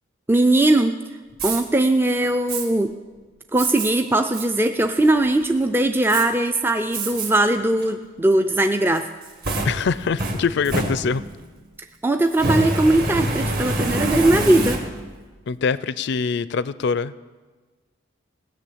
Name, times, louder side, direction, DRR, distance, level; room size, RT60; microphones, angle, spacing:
voice 1, 0.3-1.0 1.4-2.9 3.5-9.1 12.0-14.8, right 1 dB, 10° right, 7 dB, 0.4 m, -19 dB
Fire, 1.3-1.6 2.5-2.7 3.6-3.9 4.3-4.5 5.0-5.4 6.1-6.2 6.9-7.3 7.8-7.9 8.9-11.4 12.3-15.2, right 2 dB, 45° right, 1.8 m, -26 dB
voice 2, 9.6-11.2 15.5-17.1, left 5 dB, 55° left, 18 dB, 0.4 m, -23 dB
18.0 x 6.8 x 8.5 m, 1.4 s
head